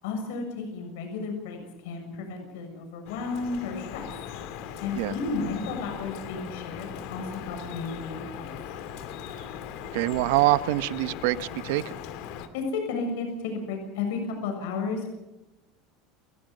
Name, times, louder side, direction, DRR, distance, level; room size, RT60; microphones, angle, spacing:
voice 1, 0.0-4.1 4.8-8.8 12.5-15.1, left 4 dB, 80° left, 4 dB, 6.9 m, -33 dB
Drip, 3.1-12.5, left 8 dB, 60° left, 2.3 m, -39 dB
voice 2, 9.9-11.9, right 17 dB, 75° right, 14 dB, 1.0 m, -25 dB
29.0 x 19.0 x 5.4 m, 0.95 s
cardioid pair, 160°, 0 cm